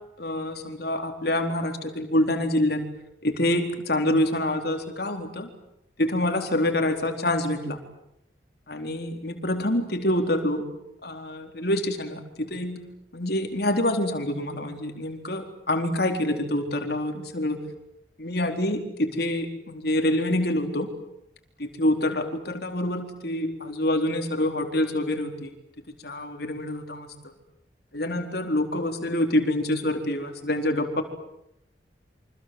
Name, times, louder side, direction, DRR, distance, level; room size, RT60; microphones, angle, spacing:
voice 1, 0.2-2.9 3.2-5.5 6.0-7.8 8.7-10.7 11.0-12.8 13.1-17.6 18.2-20.9 21.6-25.5 26.0-27.3 27.9-31.0, left 1 dB, 55° left, 5 dB, 4.2 m, -26 dB
28.0 x 25.5 x 8.0 m, 0.81 s
head